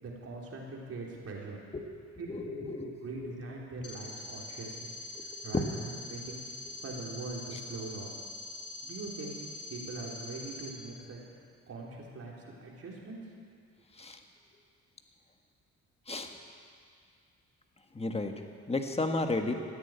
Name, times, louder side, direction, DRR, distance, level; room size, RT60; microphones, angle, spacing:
voice 1, 0.0-1.6 2.2-4.9 5.2-6.4 6.8-8.1 8.8-9.3 9.7-11.2 11.7-13.2, right 3 dB, 50° right, -3 dB, 3.9 m, -42 dB
voice 2, 2.3-3.0 3.2-3.3 5.1-5.6 7.5-7.6 13.9-14.2 16.1-16.4 17.9-18.3 18.7-19.5, left 2 dB, 20° left, 5 dB, 1.5 m, -33 dB
sound 1, 3.8-10.7, left 2 dB, 50° left, 2.1 m, -44 dB
14.5 x 10.0 x 9.1 m, 2.2 s
cardioid pair, 90°, 30 cm